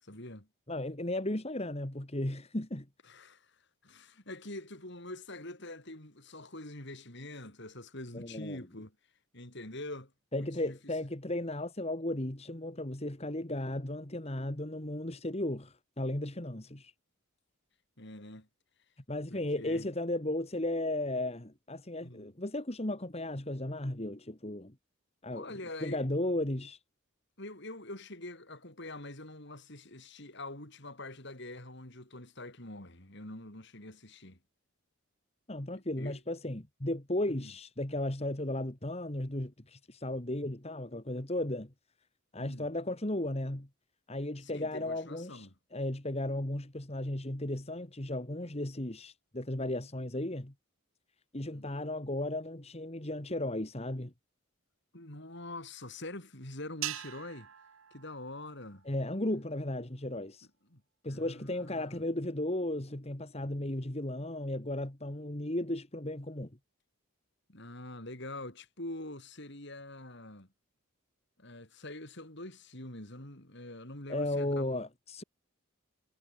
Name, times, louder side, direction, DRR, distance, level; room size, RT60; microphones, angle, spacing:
voice 1, 0.0-0.5 3.1-9.0 9.3-10.8 18.0-18.5 19.3-19.9 22.0-22.3 25.3-26.0 27.4-34.4 35.7-36.2 37.3-37.5 42.4-42.7 44.4-45.5 51.4-51.7 54.9-57.5 57.9-58.9 60.7-60.8 61.1-61.9 67.5-70.5 71.4-74.8, left 1 dB, 55° left, 5.3 m, -45 dB
voice 2, 0.7-2.9 8.1-8.6 10.3-16.9 19.1-24.7 25.2-25.5 25.8-26.8 35.5-41.7 42.3-43.7 44.1-50.5 51.3-54.1 58.9-60.5 61.0-66.5 74.1-75.2, left 1 dB, 30° left, 1.8 m, -35 dB
sound 1, 56.8-59.3, right 13 dB, 65° right, 0.8 m, -43 dB
head